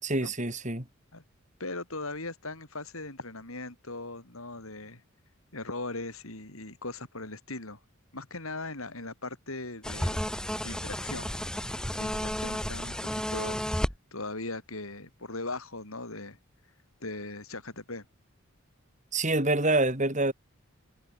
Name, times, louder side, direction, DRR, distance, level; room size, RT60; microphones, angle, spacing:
voice 1, 0.0-0.9 19.1-20.3, right 2 dB, 35° right, 5.3 m, -26 dB
voice 2, 1.6-5.0 5.5-7.8 8.1-10.2 10.6-11.4 12.0-16.4 17.0-18.0, left 2 dB, 75° left, 6.2 m, -39 dB
sound 1, 9.8-13.9, equal, 5° left, 2.2 m, -32 dB
head